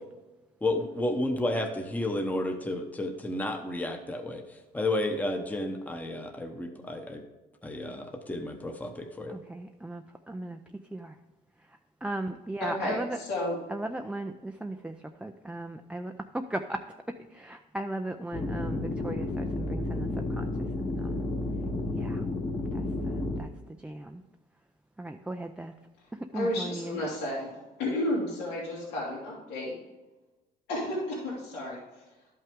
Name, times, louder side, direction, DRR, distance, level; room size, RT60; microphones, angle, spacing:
voice 1, 0.6-4.4 4.7-7.2 7.6-9.3, left 1 dB, 10° left, 4 dB, 0.9 m, -31 dB
voice 2, 9.3-10.6 10.9-11.2 11.7-13.2 13.7-16.8 17.3-21.3 21.9-22.2 22.7-23.5 23.8-24.2 25.0-25.7 26.1-27.1, right 1 dB, 5° right, 4 dB, 0.4 m, -37 dB
voice 3, 12.6-13.6 26.3-29.7 30.7-31.8, left 1 dB, 85° left, -5 dB, 2.5 m, -32 dB
sound 1, 18.3-23.4, left 2 dB, 30° left, 1.2 m, -31 dB
11.5 x 5.6 x 3.6 m, 1.1 s
cardioid pair, 110°, 17 cm